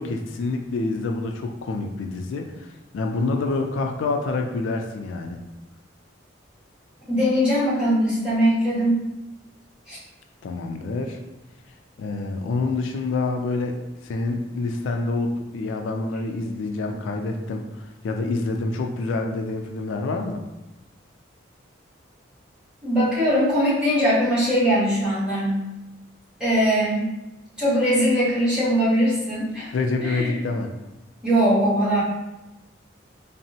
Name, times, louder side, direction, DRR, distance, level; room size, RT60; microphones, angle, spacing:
voice 1, 0.0-5.4 10.4-11.2 12.0-20.4 29.7-30.7, left 3 dB, 75° left, 3 dB, 0.3 m, -27 dB
voice 2, 7.1-9.0 9.9-10.0 22.8-25.6 26.4-27.1 27.6-29.7 30.0-30.4 31.2-32.0, equal, 5° right, -10 dB, 1.1 m, -21 dB
3.5 x 2.0 x 2.7 m, 0.97 s
head